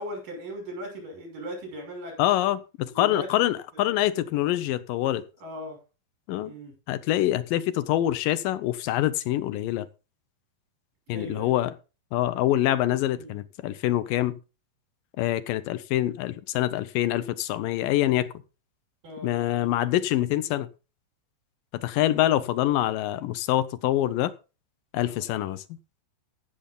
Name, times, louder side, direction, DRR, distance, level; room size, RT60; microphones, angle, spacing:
voice 1, 0.0-2.2 3.0-3.3 5.4-5.8 6.4-6.7 11.1-11.5 13.2-13.4 19.0-19.3 22.1-22.3 24.1-24.3 25.0-25.2, equal, 75° right, 7.7 m, -38 dB
voice 2, 2.2-5.3 6.3-6.5 6.9-9.9 11.1-11.8 12.1-14.4 15.2-18.3 19.2-20.7 21.7-24.3 24.9-25.6, left 14 dB, 80° left, 2.4 m, -25 dB
15.5 x 7.2 x 3.8 m
omnidirectional pair, 3.9 m